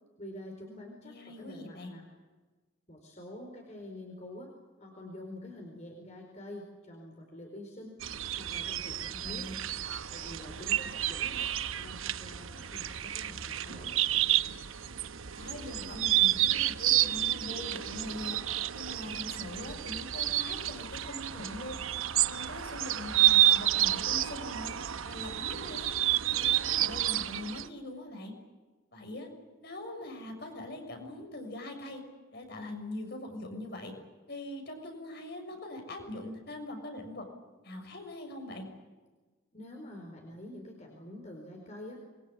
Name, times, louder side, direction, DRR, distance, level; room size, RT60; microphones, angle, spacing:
voice 1, 0.2-2.1 2.9-4.5 4.8-8.0 8.4-9.5 10.1-14.0 39.5-42.0, left 1 dB, 35° left, 1 dB, 4.5 m, -46 dB
voice 2, 1.0-1.9 9.1-9.5 15.3-18.4 18.7-21.8 22.2-24.7 25.0-25.9 26.3-26.5 26.8-28.3 28.9-29.3 29.6-32.0 32.3-33.9 34.3-37.3 37.6-38.6, left 1 dB, 50° left, 4 dB, 6.4 m, -42 dB
sound 1, 8.0-27.7, right 13 dB, 80° right, 0.9 m, -30 dB
27.0 x 22.5 x 8.8 m, 1.3 s
head